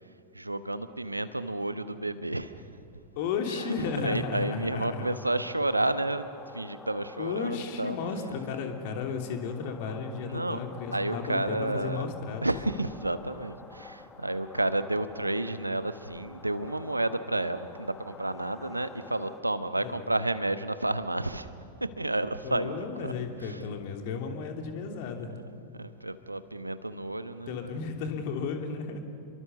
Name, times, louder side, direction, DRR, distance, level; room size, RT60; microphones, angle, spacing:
voice 1, 0.3-2.7 3.5-6.3 6.5-8.0 10.3-10.6 10.9-12.1 12.4-21.5 21.8-23.1 23.4-23.6 25.3-27.8, right 2 dB, 85° right, 12 dB, 1.1 m, -31 dB
voice 2, 3.1-5.1 7.2-12.4 19.8-20.1 22.4-25.4 27.5-29.0, left 5 dB, 50° left, 4 dB, 2.9 m, -34 dB
sound 1, 3.6-19.4, left 4 dB, 15° left, 1.6 m, -49 dB
29.5 x 23.0 x 7.0 m, 2.7 s
figure-of-eight pair, 90°, 0 cm